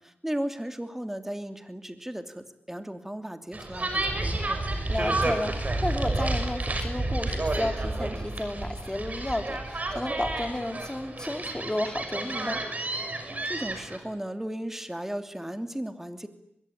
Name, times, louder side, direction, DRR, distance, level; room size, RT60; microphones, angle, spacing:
voice 1, 0.0-4.6 13.4-16.3, right 1 dB, 10° right, 7 dB, 2.9 m, -35 dB
sound 1, 3.5-14.0, right 2 dB, 40° right, 6.2 m, -30 dB
voice 2, 4.9-12.6, left 1 dB, 20° left, 5 dB, 4.3 m, -32 dB
24.0 x 22.5 x 10.0 m, 0.79 s
cardioid pair, 60°, 4 cm